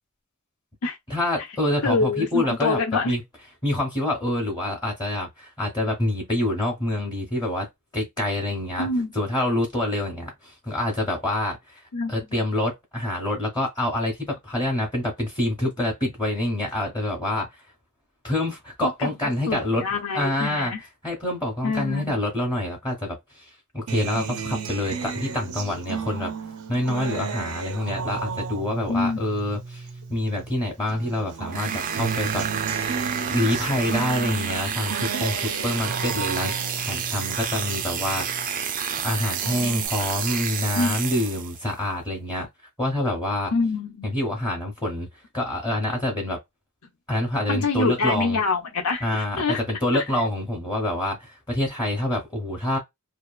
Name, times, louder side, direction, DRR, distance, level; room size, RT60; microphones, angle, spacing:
voice 1, 1.1-2.8 3.0-3.2 3.6-7.7 7.9-11.8 12.1-17.5 18.2-19.9 20.1-23.4 23.7-26.3 26.7-33.0 33.3-38.3 39.0-42.5 42.8-43.5 44.0-45.1 45.3-46.4 47.1-48.4 49.0-52.8, left 1 dB, 20° left, 0.9 m, -26 dB
voice 2, 1.8-3.1 8.8-9.1 11.9-12.2 18.8-19.1 19.5-20.8 21.6-22.1 28.9-29.2 33.0-33.1 35.1-35.2 40.7-41.0 43.5-44.1 47.5-49.6 49.9-50.0, left 3 dB, 80° left, 0.7 m, -25 dB
Acoustic guitar, 23.9-30.5 30.9-38.5 38.9-39.9, right 6 dB, 85° right, 0.5 m, -33 dB
sound 1, 31.5-41.7, right 8 dB, 35° right, 0.3 m, -30 dB
2.8 x 2.3 x 2.4 m
head